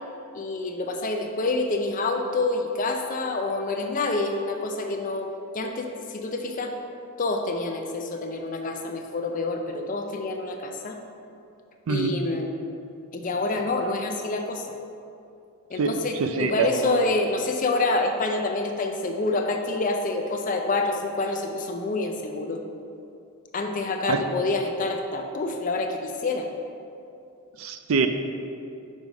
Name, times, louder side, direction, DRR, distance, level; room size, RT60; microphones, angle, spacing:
voice 1, 0.3-5.3 5.5-6.7 7.2-11.0 11.9-12.5 13.1-14.6 15.7-22.6 23.5-26.5, left 2 dB, 35° left, 4 dB, 0.5 m, -27 dB
voice 2, 15.8-17.0 24.1-24.2 27.6-28.1, right 5 dB, 70° right, 8 dB, 0.4 m, -25 dB
5.4 x 5.2 x 4.7 m, 2.6 s
head